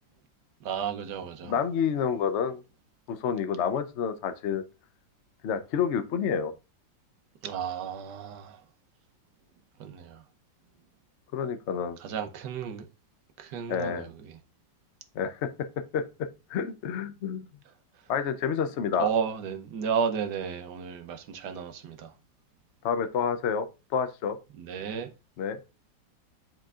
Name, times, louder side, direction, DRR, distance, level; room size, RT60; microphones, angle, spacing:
voice 1, 0.6-1.5 7.4-8.6 9.8-10.2 12.0-12.9 13.4-14.3 19.0-22.1 24.6-25.1, right 7 dB, 65° right, 1.3 m, -33 dB
voice 2, 1.4-2.6 3.1-4.6 5.4-6.5 11.3-12.0 13.7-14.1 15.1-15.5 15.9-16.0 16.5-17.5 18.1-19.1 22.8-23.7 23.9-24.4 25.4-25.6, left 7 dB, 75° left, 0.6 m, -28 dB
10.0 x 4.6 x 2.4 m
omnidirectional pair, 2.1 m